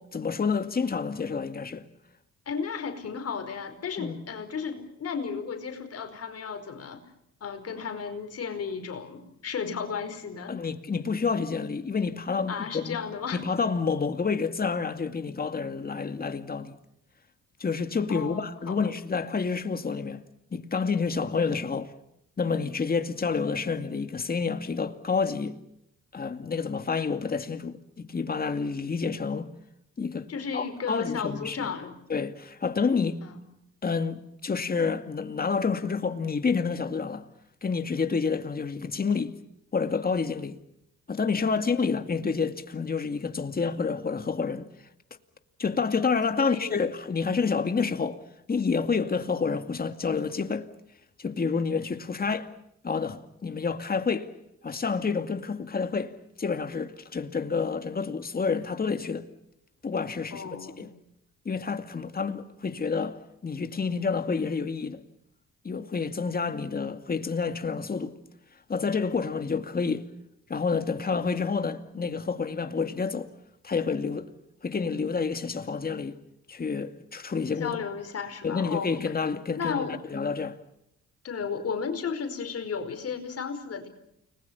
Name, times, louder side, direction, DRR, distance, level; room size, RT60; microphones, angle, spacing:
voice 1, 0.1-1.8 4.0-4.3 10.5-13.0 13.3-16.8 17.6-20.2 20.5-21.9 22.4-25.6 26.1-29.5 30.0-31.7 32.1-33.2 33.8-37.2 37.6-39.3 39.7-40.6 41.1-44.7 45.6-48.2 48.5-50.7 51.2-52.5 52.8-54.3 54.6-56.1 56.4-59.3 59.8-60.4 60.8-60.9 61.5-63.2 63.4-65.0 65.6-68.1 68.7-70.1 70.5-73.3 73.6-74.3 74.6-76.2 76.5-77.8 78.4-80.6, left 5 dB, 30° left, 2.3 m, -29 dB
voice 2, 2.4-7.0 7.4-10.6 12.5-13.4 18.1-18.8 30.3-32.0 33.2-33.4 41.6-42.0 46.4-46.9 60.3-60.9 77.6-78.9 79.6-80.0 81.2-83.9, left 6 dB, 55° left, 5.0 m, -34 dB
30.0 x 21.0 x 7.1 m
cardioid pair, 90°, 30 cm